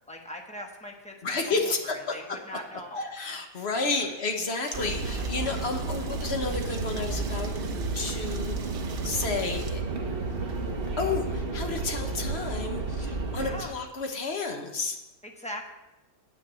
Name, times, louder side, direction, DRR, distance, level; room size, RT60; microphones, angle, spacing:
voice 1, 0.1-3.1 3.9-4.1 13.3-13.7 15.2-15.7, equal, 5° left, 1 dB, 0.8 m, -40 dB
voice 2, 1.2-2.4 3.2-7.5 7.9-8.6 9.0-9.8 11.0-15.0, left 3 dB, 45° left, 4 dB, 1.1 m, -31 dB
sound 1, 4.6-9.7, right 5 dB, 60° right, 1.2 m, -45 dB
sound 2, 4.7-13.6, right 3 dB, 40° right, 1.1 m, -32 dB
8.4 x 6.5 x 6.8 m, 0.98 s
omnidirectional pair, 1.8 m